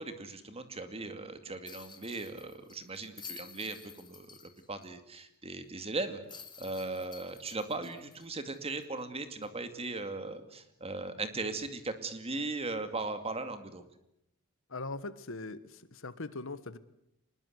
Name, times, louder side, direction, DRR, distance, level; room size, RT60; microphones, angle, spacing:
voice 1, 0.0-13.9, right 3 dB, 30° right, 9 dB, 2.4 m, -38 dB
sound 1, 1.7-4.9 5.2-5.3 6.3-9.0 9.4-9.5 11.6-11.8, left 6 dB, 20° left, 2.1 m, -51 dB
voice 2, 14.7-16.8, left 3 dB, 65° left, 14 dB, 1.4 m, -41 dB
25.0 x 20.5 x 8.1 m, 0.79 s
head